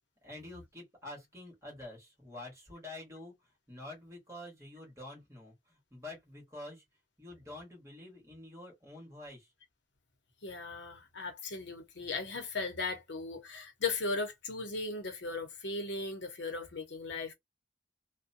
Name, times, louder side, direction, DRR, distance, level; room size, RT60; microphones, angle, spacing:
voice 1, 0.2-6.8 7.2-9.5, left 2 dB, 15° right, 1.3 m, -48 dB
voice 2, 10.4-17.3, left 3 dB, 75° left, 0.8 m, -37 dB
2.5 x 2.2 x 2.6 m
head